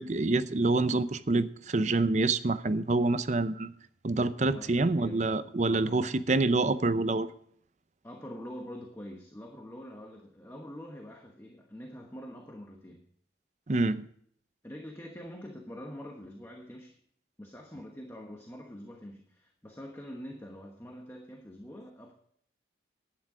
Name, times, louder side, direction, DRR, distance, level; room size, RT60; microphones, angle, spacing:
voice 1, 0.0-3.7 4.0-7.3 13.7-14.1, right 2 dB, 40° right, 0.6 m, -27 dB
voice 2, 4.4-5.3 5.7-6.1 8.0-13.0 14.6-17.0 17.4-22.1, equal, 15° left, 1.1 m, -45 dB
11.5 x 9.7 x 4.9 m
head